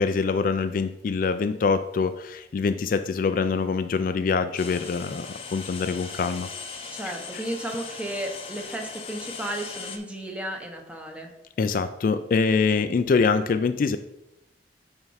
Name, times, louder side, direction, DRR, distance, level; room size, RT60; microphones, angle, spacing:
voice 1, 0.0-6.5 11.6-14.0, left 4 dB, 50° left, 10 dB, 0.3 m, -24 dB
sound 1, 4.6-10.0, left 5 dB, 35° left, 0.7 m, -39 dB
voice 2, 6.9-11.3, right 1 dB, 5° right, 2 dB, 0.9 m, -34 dB
5.6 x 4.5 x 5.6 m, 0.87 s
head